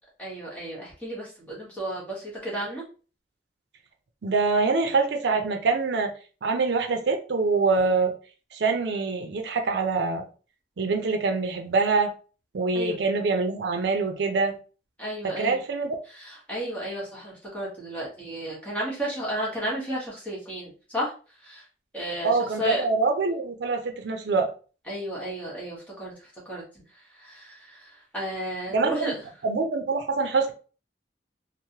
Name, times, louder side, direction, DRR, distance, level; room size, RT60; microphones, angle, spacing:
voice 1, 0.2-2.8 12.7-13.0 15.0-15.6 16.1-21.1 21.4-21.6 21.9-22.8 24.9-29.1, equal, 10° left, 1.0 m, -33 dB
voice 2, 4.2-6.1 6.4-8.1 8.5-10.3 10.8-12.1 12.5-14.6 15.2-16.0 22.2-24.5 28.7-29.1 29.4-30.5, right 4 dB, 75° right, 0.5 m, -25 dB
3.0 x 2.0 x 2.7 m
head